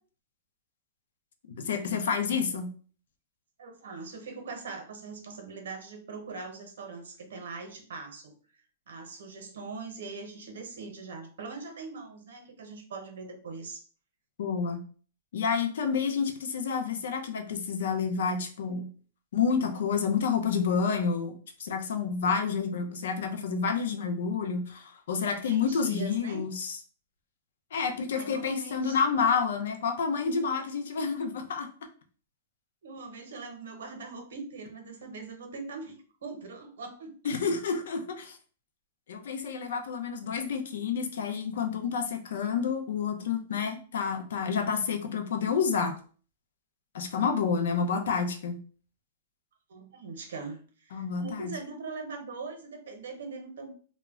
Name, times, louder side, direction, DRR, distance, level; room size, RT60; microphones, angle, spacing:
voice 1, 1.5-2.7 14.4-14.8 15.3-18.9 19.3-21.3 21.6-26.8 27.7-31.7 37.2-38.4 39.1-46.0 46.9-48.6 50.9-51.5, left 6 dB, 75° left, 5 dB, 0.5 m, -29 dB
voice 2, 3.6-8.3 8.9-13.8 25.5-26.4 28.1-29.0 32.8-37.1 49.7-53.7, right 4 dB, 80° right, 5 dB, 0.7 m, -41 dB
2.1 x 2.1 x 3.5 m, 0.42 s
hypercardioid pair, 155°, 0 cm